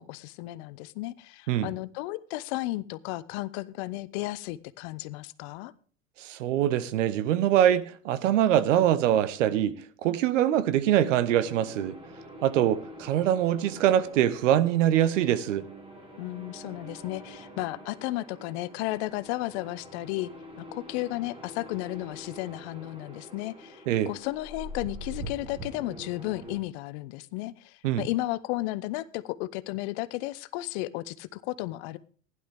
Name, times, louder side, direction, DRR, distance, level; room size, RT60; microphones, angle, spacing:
voice 1, 0.0-5.7 16.2-20.3 20.6-32.0, left 18 dB, 55° left, 0.8 m, -34 dB
voice 2, 6.2-11.9 12.4-15.6 23.9-24.1 27.8-28.1, right 11 dB, 70° right, 1.1 m, -24 dB
sound 1, 11.1-26.6, equal, 15° right, 2.5 m, -45 dB
15.5 x 11.0 x 3.5 m
hypercardioid pair, 90°, 39 cm